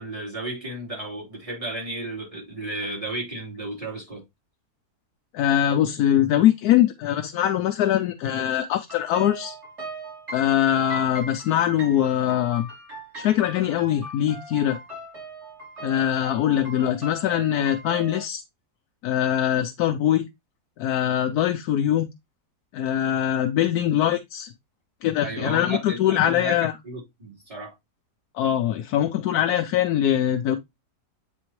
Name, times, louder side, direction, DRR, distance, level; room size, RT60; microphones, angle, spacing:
voice 1, 0.0-4.2 25.2-26.6 26.8-27.7, right 2 dB, 20° right, 4.0 m, -33 dB
voice 2, 5.3-9.6 10.3-12.7 13.2-14.8 15.8-18.4 19.0-20.3 20.8-22.1 22.7-24.5 25.0-26.7 28.4-30.6, left 11 dB, 75° left, 1.1 m, -22 dB
sound 1, 8.9-18.2, right 1 dB, 45° right, 3.9 m, -40 dB
8.4 x 4.2 x 3.1 m
omnidirectional pair, 1.7 m